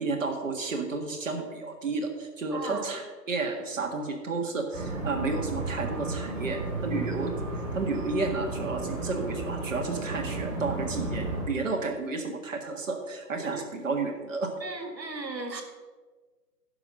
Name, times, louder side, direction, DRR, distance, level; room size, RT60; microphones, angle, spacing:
voice 1, 0.0-7.3 7.7-14.5, right 3 dB, 50° right, 2 dB, 1.9 m, -32 dB
voice 2, 2.5-2.9 13.4-13.7 14.6-15.6, right 3 dB, 85° right, 4 dB, 2.2 m, -36 dB
sound 1, 4.7-11.4, right 2 dB, 20° right, 2.0 m, -33 dB
11.0 x 5.8 x 6.5 m, 1.4 s
figure-of-eight pair, 155°, 49 cm